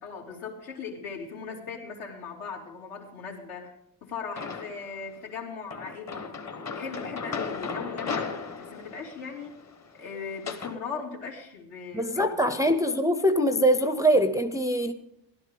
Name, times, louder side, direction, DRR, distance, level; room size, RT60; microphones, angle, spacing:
voice 1, 0.0-3.7 4.0-6.3 6.7-9.6 10.0-12.6, left 5 dB, 80° left, -1 dB, 3.1 m, -38 dB
sound 1, 4.4-5.0 5.7-10.8, left 5 dB, 35° left, 1.1 m, -36 dB
voice 2, 11.9-14.9, equal, 10° right, 8 dB, 0.4 m, -23 dB
17.0 x 12.0 x 3.7 m, 0.81 s
cardioid pair, 135°, 48 cm